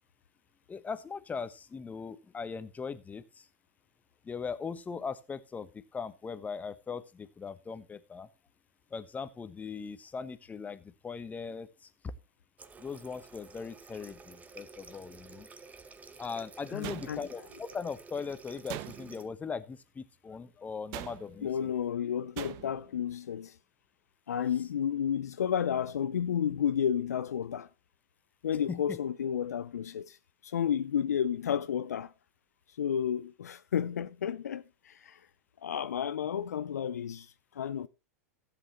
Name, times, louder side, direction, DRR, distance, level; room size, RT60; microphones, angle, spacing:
voice 1, 0.7-3.5 4.2-8.3 8.9-12.1 12.8-15.5 16.2-21.7 28.7-29.0, left 5 dB, 20° left, 1.1 m, -39 dB
Water tap faucet, 12.6-19.3, right 4 dB, 20° right, 1.0 m, -52 dB
voice 2, 16.7-17.2 21.4-23.6 24.3-27.7 28.4-30.2 30.4-32.1 32.8-35.2 35.6-37.9, left 8 dB, 80° left, 0.5 m, -32 dB
sound 1, 16.8-17.5 18.7-19.3 20.9-21.5 22.4-22.9, right 17 dB, 50° right, 0.7 m, -42 dB
15.5 x 8.1 x 3.0 m
hypercardioid pair, 95°, 9 cm